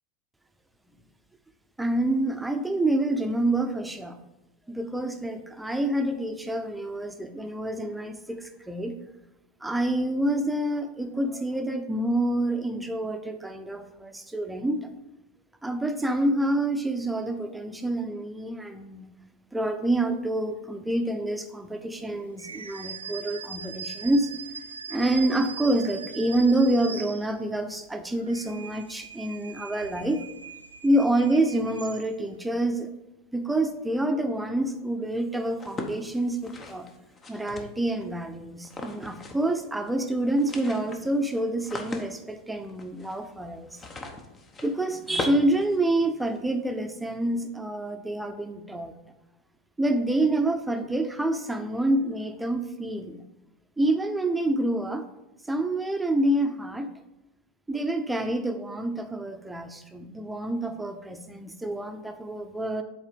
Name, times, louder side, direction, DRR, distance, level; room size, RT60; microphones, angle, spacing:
voice 1, 1.8-4.2 4.7-8.9 9.6-14.9 15.6-19.1 19.5-24.3 24.9-30.2 30.8-32.9 33.3-36.9 37.3-43.8 44.6-48.9 49.8-53.2 53.8-55.1 55.5-56.9 57.7-62.8, right 1 dB, 5° right, 7 dB, 0.8 m, -27 dB
sound 1, 22.4-27.6 28.1-32.4, right 6 dB, 90° right, 0.4 m, -41 dB
sound 2, 35.5-38.0 38.6-39.6 39.8-39.9 40.2-46.4, left 3 dB, 25° left, 1.0 m, -39 dB
7.2 x 4.3 x 5.2 m, 0.94 s
hypercardioid pair, 90°, 0 cm